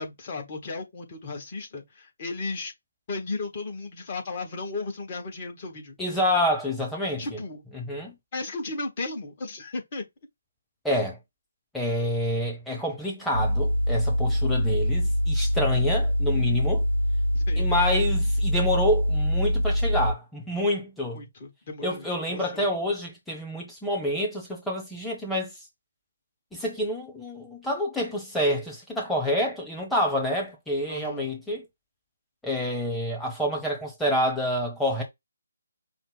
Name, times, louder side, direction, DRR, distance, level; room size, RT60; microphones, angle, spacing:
voice 1, 0.0-2.7 3.1-6.0 7.2-7.6 8.3-10.0 17.3-17.7 21.1-22.7 30.9-31.2, left 3 dB, 30° left, 1.3 m, -35 dB
voice 2, 6.0-7.4 7.7-8.1 10.8-11.2 11.7-16.8 17.6-21.2 21.8-25.5 26.5-31.7 32.4-35.0, left 1 dB, 5° left, 1.0 m, -28 dB
sound 1, 13.3-20.1, equal, 80° right, 0.8 m, -24 dB
5.6 x 2.1 x 3.9 m
figure-of-eight pair, 145°, 0 cm